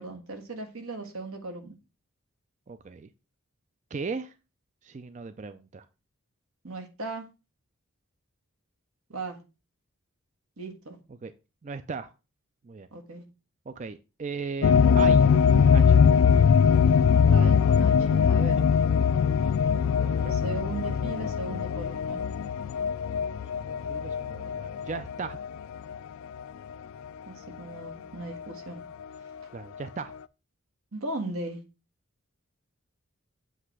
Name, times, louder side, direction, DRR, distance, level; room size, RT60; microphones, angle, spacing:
voice 1, 0.0-1.7 6.6-7.3 9.1-9.4 10.6-11.0 12.9-13.2 17.3-18.6 20.3-22.2 27.3-28.8 30.9-31.6, right 2 dB, 80° right, 1.6 m, -37 dB
voice 2, 2.7-3.1 3.9-4.3 4.8-5.8 11.2-11.3 11.6-12.1 12.6-12.9 13.7-15.3 15.5-16.0 19.0-19.1 20.0-20.4 23.5-25.4 29.5-30.1, right 4 dB, 35° right, 0.4 m, -37 dB
sound 1, 14.6-25.5 25.9-26.0 27.9-28.0, left 6 dB, 70° left, 0.3 m, -21 dB
7.9 x 3.2 x 6.1 m
head